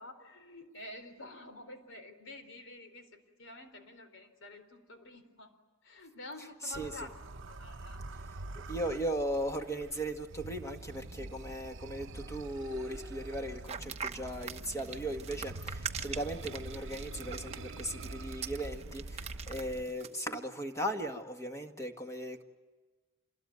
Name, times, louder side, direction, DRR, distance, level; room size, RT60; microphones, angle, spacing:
voice 1, 0.0-3.1 3.4-5.5 5.8-8.0, left 2 dB, 60° left, 8 dB, 4.1 m, -49 dB
sound 1, 6.7-19.8, right 2 dB, 55° right, 0.9 m, -45 dB
voice 2, 8.7-22.4, right 1 dB, 15° left, 4 dB, 1.8 m, -37 dB
sound 2, 13.7-20.2, right 7 dB, 30° right, 1.0 m, -42 dB
27.5 x 21.0 x 9.5 m, 1.3 s
head